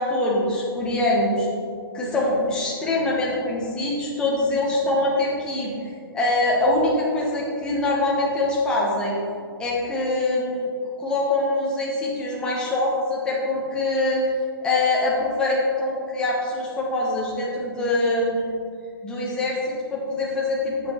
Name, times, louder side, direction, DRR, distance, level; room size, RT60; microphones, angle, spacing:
voice 1, 0.0-1.5 1.9-5.7 6.1-9.2 9.6-10.7 11.0-14.3 14.6-18.5 19.0-20.9, left 2 dB, 5° left, -4 dB, 0.8 m, -24 dB
7.5 x 6.6 x 3.0 m, 2.3 s
hypercardioid pair, 165°, 13 cm